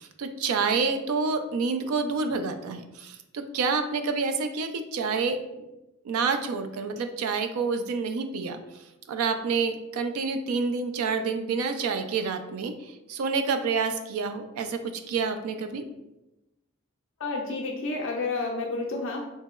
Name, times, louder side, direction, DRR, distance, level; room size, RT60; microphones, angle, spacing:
voice 1, 0.0-5.4 6.0-8.6 9.1-15.8, right 4 dB, 85° right, 8 dB, 0.3 m, -28 dB
voice 2, 17.2-19.2, left 3 dB, 60° left, -1 dB, 0.4 m, -30 dB
2.9 x 2.7 x 2.3 m, 0.96 s
head